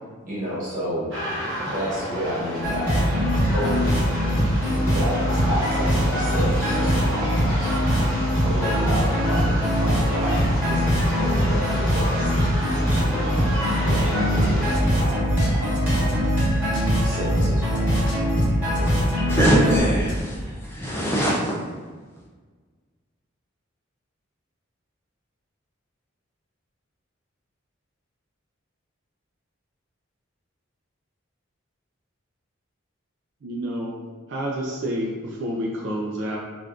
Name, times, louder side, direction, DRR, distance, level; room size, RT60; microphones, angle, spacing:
voice 1, 0.2-1.1 1.6-2.9 3.4-4.0 4.7-7.9 8.2-12.5 12.9-13.5 13.8-16.0 17.0-17.9 18.7-19.1, equal, 40° right, -8 dB, 1.2 m, -31 dB
sound 1, 1.1-14.8, equal, 80° right, 0.9 m, -31 dB
sound 2, 2.6-19.8, equal, 10° right, 1.2 m, -22 dB
sound 3, 14.4-15.5 15.7-15.8 16.1-16.5 16.7-16.8 17.1-17.8 18.1-18.5 18.7-19.1 19.4-20.2, equal, 60° left, 0.6 m, -32 dB
voice 2, 19.3-21.5, equal, 10° left, -5 dB, 0.3 m, -22 dB
voice 3, 33.4-36.4, equal, 60° right, -3 dB, 0.4 m, -29 dB
3.4 x 2.5 x 2.4 m, 1.4 s
head